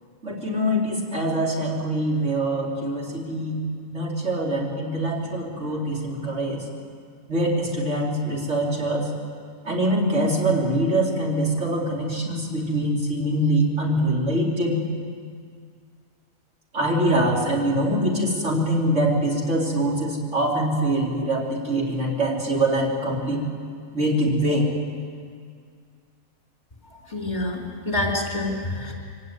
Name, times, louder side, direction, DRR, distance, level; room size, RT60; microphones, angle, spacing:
voice 1, 0.2-3.6 3.9-6.6 7.3-9.1 9.7-14.8 16.7-23.4 23.9-24.6, right 1 dB, 55° right, -3 dB, 3.8 m, -24 dB
voice 2, 27.1-27.6 27.9-28.9, left 2 dB, 30° left, -1 dB, 3.7 m, -26 dB
23.5 x 17.5 x 9.5 m, 2.1 s
omnidirectional pair, 1.5 m